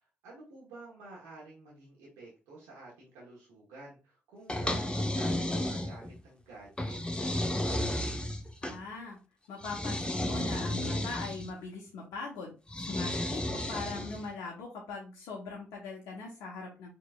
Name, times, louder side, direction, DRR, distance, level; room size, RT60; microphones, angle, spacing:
voice 1, 0.2-7.4, right 2 dB, 90° right, -5 dB, 1.1 m, -50 dB
sound 1, 4.5-6.2 6.8-8.8 9.6-11.5 12.7-14.3, left 1 dB, 15° left, 1.0 m, -33 dB
voice 2, 8.6-9.2 9.5-16.9, left 4 dB, 80° left, -2 dB, 0.8 m, -41 dB
4.5 x 3.0 x 2.3 m, 0.32 s
hypercardioid pair, 45°, 6 cm